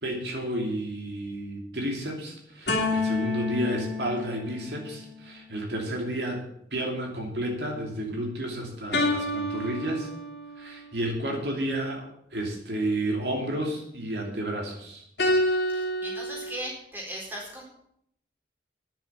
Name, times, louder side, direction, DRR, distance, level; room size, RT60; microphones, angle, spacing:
voice 1, 0.0-10.1 10.6-15.0, right 1 dB, 80° right, 1 dB, 2.8 m, -31 dB
sound 1, 2.7-5.2 8.9-10.7 15.2-16.6, left 2 dB, 75° left, 2.3 m, -28 dB
voice 2, 15.6-17.6, right 1 dB, 10° right, -4 dB, 4.1 m, -38 dB
9.9 x 7.5 x 8.7 m, 0.73 s
head